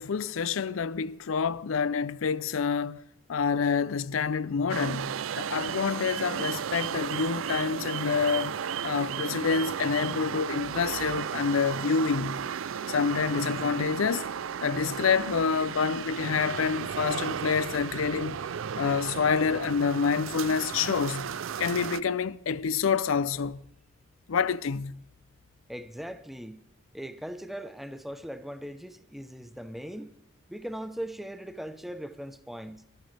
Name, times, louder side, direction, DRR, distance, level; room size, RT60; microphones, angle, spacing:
voice 1, 0.0-3.0 3.3-8.6 8.8-12.4 12.9-14.3 14.6-18.4 18.8-21.3 21.6-23.6 24.3-25.0, left 5 dB, 90° left, 0.5 m, -27 dB
sound 1, 4.7-22.0, right 8 dB, 75° right, 0.4 m, -34 dB
voice 2, 25.7-26.6 26.9-30.2 30.5-32.8, equal, ahead, 0.8 m, -39 dB
23.0 x 13.0 x 3.3 m
head